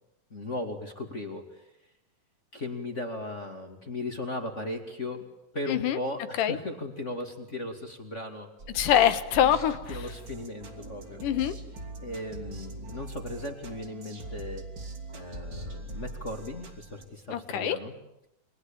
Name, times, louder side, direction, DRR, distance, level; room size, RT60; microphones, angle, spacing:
voice 1, 0.3-1.6 2.5-5.2 5.5-8.5 9.4-9.6 9.9-11.2 12.0-14.7 15.1-17.9, left 2 dB, 25° left, 5 dB, 2.3 m, -37 dB
voice 2, 5.7-6.0 6.4-6.6 8.7-10.1 11.2-11.5 17.3-17.8, left 10 dB, 80° left, 12 dB, 3.0 m, -24 dB
sound 1, 8.6-17.0, right 2 dB, 35° right, 3.5 m, -41 dB
29.5 x 23.0 x 8.8 m, 0.82 s
omnidirectional pair, 3.7 m